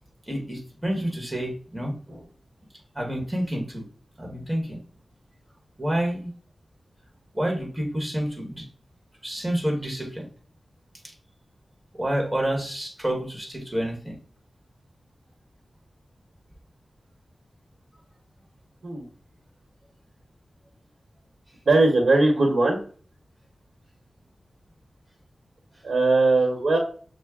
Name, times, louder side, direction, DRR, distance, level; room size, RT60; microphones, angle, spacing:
voice 1, 0.3-2.3 2.9-3.8 4.2-4.8 5.8-6.3 7.3-8.7 9.2-10.3 11.9-14.2, right 1 dB, 5° right, 0 dB, 1.2 m, -29 dB
voice 2, 21.6-22.8 25.8-26.8, right 2 dB, 60° right, 0 dB, 1.1 m, -19 dB
6.2 x 2.1 x 3.5 m, 0.43 s
wide cardioid pair, 100°, 0 cm